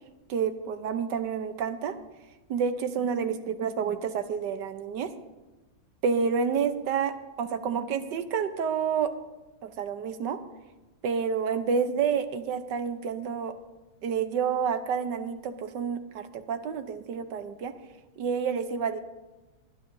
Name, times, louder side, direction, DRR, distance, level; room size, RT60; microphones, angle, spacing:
voice 1, 0.3-1.9 2.5-5.1 6.0-9.1 9.6-10.4 11.0-13.5 14.0-17.7 18.2-19.0, right 6 dB, 65° right, 9 dB, 1.3 m, -29 dB
24.0 x 11.0 x 2.7 m, 1.1 s
omnidirectional pair, 2.3 m